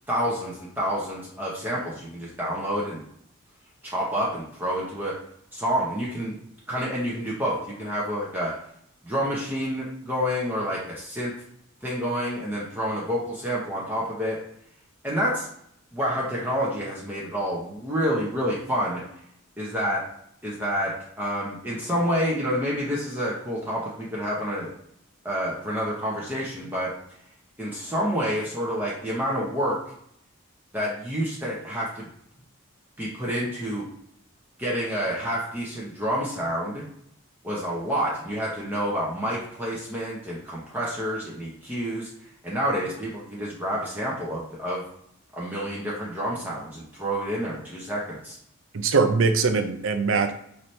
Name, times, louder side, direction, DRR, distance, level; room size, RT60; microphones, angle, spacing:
voice 1, 0.1-3.0 3.8-5.1 5.5-6.4 6.7-8.5 9.0-11.3 11.8-14.4 15.0-15.5 15.9-19.0 19.6-20.0 20.4-24.7 25.2-26.9 27.6-29.8 30.7-32.1 33.0-33.8 34.6-36.8 37.4-42.1 42.4-44.8 45.3-48.4, equal, 10° right, -6 dB, 0.8 m, -28 dB
voice 2, 48.7-50.3, right 4 dB, 60° right, 7 dB, 0.5 m, -22 dB
5.8 x 2.8 x 3.2 m, 0.71 s
head